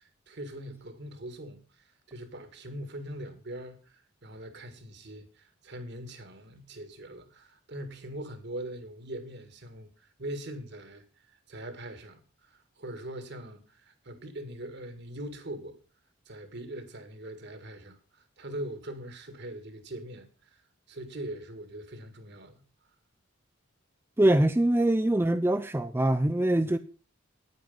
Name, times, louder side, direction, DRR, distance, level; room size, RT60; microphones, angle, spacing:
voice 1, 0.0-1.6 2.1-15.8 16.3-20.3 20.9-22.6, right 1 dB, 55° right, 1.9 m, -42 dB
voice 2, 24.2-26.8, right 1 dB, 10° right, 0.4 m, -23 dB
9.7 x 9.5 x 5.4 m
head